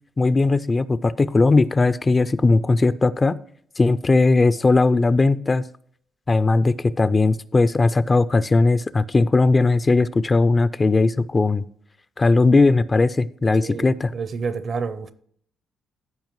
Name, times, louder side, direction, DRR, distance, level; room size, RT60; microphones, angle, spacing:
voice 1, 0.2-3.4 3.8-5.6 6.3-11.6 12.2-14.1, left 3 dB, 25° left, 0.3 m, -18 dB
voice 2, 14.1-15.1, right 5 dB, 50° right, 0.6 m, -28 dB
14.0 x 5.1 x 3.1 m
cardioid pair, 90°, 0 cm